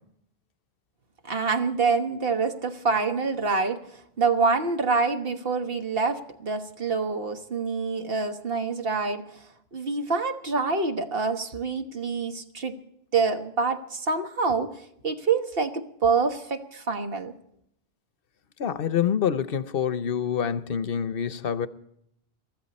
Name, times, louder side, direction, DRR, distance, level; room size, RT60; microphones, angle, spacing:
voice 1, 1.2-3.9 4.2-9.4 9.7-12.8 13.1-17.3, right 4 dB, 65° right, 1.5 m, -26 dB
voice 2, 18.6-21.7, left 8 dB, 65° left, 0.9 m, -26 dB
22.0 x 14.0 x 4.2 m
omnidirectional pair, 1.0 m